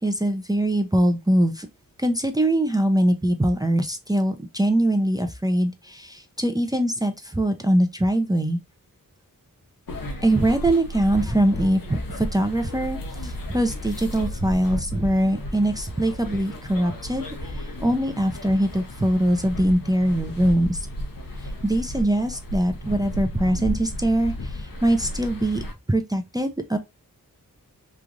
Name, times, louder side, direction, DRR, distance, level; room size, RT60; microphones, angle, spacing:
voice 1, 0.0-1.7 2.0-8.6 10.2-20.9 21.4-25.6 25.9-26.8, right 1 dB, 10° right, 0.5 m, -22 dB
sound 1, 9.9-25.7, left 1 dB, 70° left, 0.8 m, -34 dB
3.1 x 2.4 x 2.4 m
wide cardioid pair, 65°, 35 cm